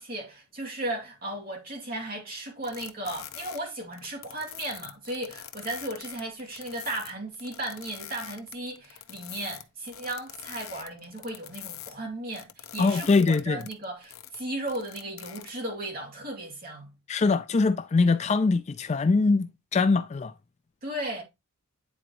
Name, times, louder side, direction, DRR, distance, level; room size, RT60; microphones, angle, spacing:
voice 1, 0.0-16.9 20.8-21.2, right 1 dB, 40° right, 2.6 m, -35 dB
sound 1, 2.6-11.9 12.3-15.8, left 11 dB, 70° left, 0.7 m, -44 dB
voice 2, 12.8-13.6 17.1-20.3, left 4 dB, 30° left, 0.3 m, -23 dB
9.5 x 3.9 x 3.0 m
head